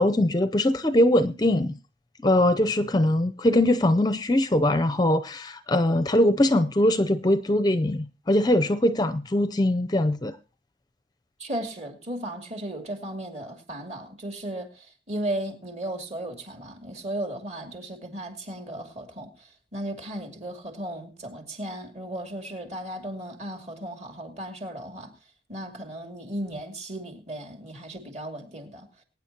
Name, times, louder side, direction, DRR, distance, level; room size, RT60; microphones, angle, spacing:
voice 1, 0.0-1.8 2.2-10.4, left 1 dB, 20° left, 0.6 m, -22 dB
voice 2, 11.4-25.1 25.5-28.9, right 1 dB, 35° right, 2.6 m, -35 dB
22.5 x 9.6 x 2.9 m
head